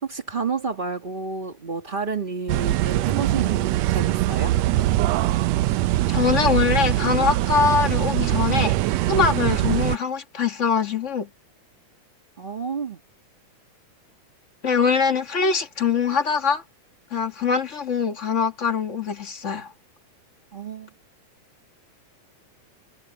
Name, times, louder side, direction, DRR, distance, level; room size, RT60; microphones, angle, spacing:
voice 1, 0.0-4.6 12.4-13.0 20.5-20.9, right 5 dB, 40° right, 0.7 m, -30 dB
sound 1, 2.5-10.0, right 15 dB, 80° right, 1.5 m, -22 dB
voice 2, 6.1-8.7 9.1-11.3 14.6-16.6 17.1-19.7, left 6 dB, 35° left, 1.2 m, -23 dB
omnidirectional pair, 3.5 m